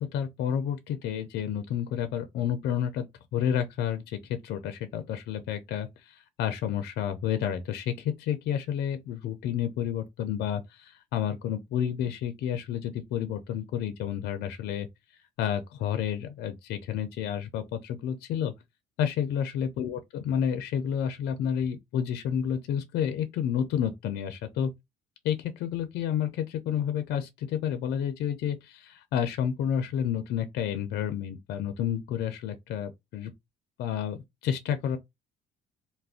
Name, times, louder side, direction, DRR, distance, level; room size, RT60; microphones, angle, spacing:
voice 1, 0.1-3.1 3.3-14.9 15.4-18.5 19.0-24.7 25.2-33.3 33.8-34.2 34.4-35.0, left 9 dB, 75° left, 0.5 m, -30 dB
2.4 x 2.1 x 3.5 m
cardioid pair, 110°, 17 cm